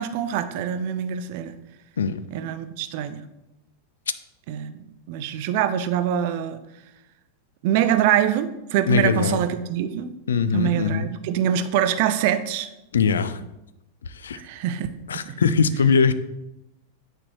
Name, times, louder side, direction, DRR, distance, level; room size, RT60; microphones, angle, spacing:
voice 1, 0.0-1.5 2.3-3.2 4.5-6.6 7.6-10.1 10.5-12.7 14.3-14.9 15.1-15.4, right 10 dB, 50° right, 10 dB, 0.5 m, -24 dB
voice 2, 8.9-9.4 10.3-11.1 12.9-13.4 14.1-14.4 15.1-16.1, left 6 dB, 65° left, 14 dB, 0.3 m, -21 dB
8.4 x 4.3 x 3.1 m, 0.93 s
figure-of-eight pair, 90°, 0 cm